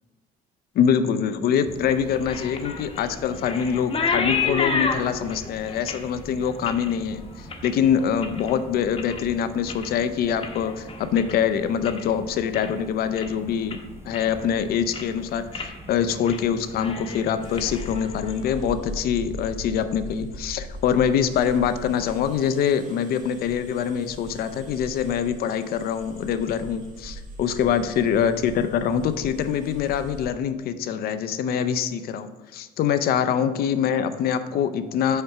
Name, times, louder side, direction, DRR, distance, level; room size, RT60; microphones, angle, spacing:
voice 1, 0.8-13.8 14.1-35.2, left 8 dB, 65° left, 11 dB, 0.5 m, -24 dB
sound 1, 1.7-17.8, right 1 dB, 15° right, 0.6 m, -44 dB
sound 2, 1.9-8.5 8.9-9.3 9.6-12.1 12.4-12.8 13.2-13.3 13.7-14.5 14.8-15.2 15.5-15.7 16.1-16.4 16.7-18.6, left 5 dB, 35° left, 0.9 m, -31 dB
sound 3, 17.4-30.3, equal, 50° right, 1.2 m, -40 dB
6.6 x 4.4 x 4.6 m, 1.2 s
cardioid pair, 110°, 17 cm